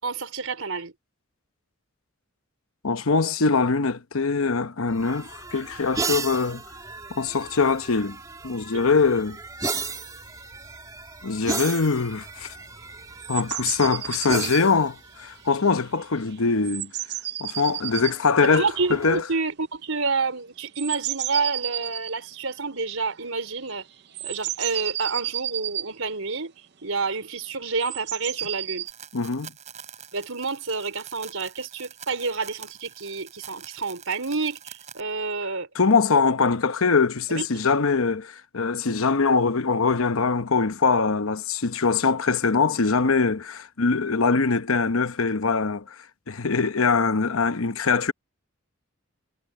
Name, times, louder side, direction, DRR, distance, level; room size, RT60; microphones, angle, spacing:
voice 1, 0.0-0.9 8.7-8.9 18.5-23.8 24.2-26.5 26.8-28.9 30.1-35.7 37.3-37.5, right 4 dB, 80° right, 4.3 m, -29 dB
voice 2, 2.8-6.6 7.1-8.2 8.4-9.4 11.2-12.5 13.3-16.9 17.4-19.2 29.1-29.5 35.7-45.8 46.3-48.1, left 4 dB, 85° left, 1.0 m, -23 dB
sound 1, 4.9-16.0 17.6-19.2, right 4 dB, 15° right, 2.8 m, -35 dB
sound 2, 13.2-14.7 15.9-16.0 16.3-16.4 16.6-18.2 20.7-22.2 23.4-23.5 23.7-23.8 24.1-25.9 27.8-28.9, right 13 dB, 50° right, 0.7 m, -32 dB
sound 3, 28.9-35.0, right 8 dB, 35° right, 5.5 m, -45 dB
head